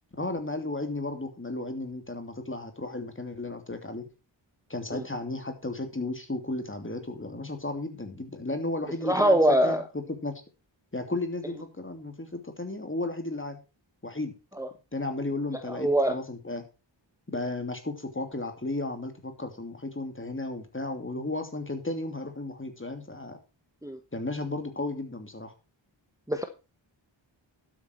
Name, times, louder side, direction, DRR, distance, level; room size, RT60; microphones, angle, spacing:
voice 1, 0.2-4.0 4.7-9.8 10.2-10.4 10.9-13.6 14.0-14.3 14.9-16.6 17.3-23.4 24.1-25.5, left 2 dB, 25° left, 7 dB, 2.8 m, -34 dB
voice 2, 9.0-9.8 14.6-14.7 15.7-16.2 23.8-24.0 26.3-26.4, right 1 dB, 5° right, 6 dB, 1.3 m, -23 dB
12.5 x 8.2 x 4.5 m, 0.31 s
wide cardioid pair, 70°, 46 cm